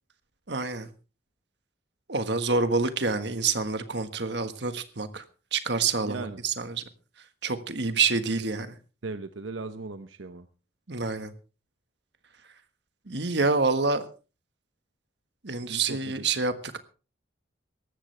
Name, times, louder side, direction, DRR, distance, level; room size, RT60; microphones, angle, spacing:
voice 1, 0.5-0.9 2.1-5.2 5.5-6.8 7.4-8.8 10.9-11.3 13.1-14.0 15.4-16.8, right 4 dB, 60° right, 9 dB, 1.5 m, -27 dB
voice 2, 6.0-6.4 9.0-10.5 15.7-16.2, right 3 dB, 85° right, 9 dB, 0.9 m, -37 dB
18.5 x 14.5 x 3.3 m, 0.35 s
head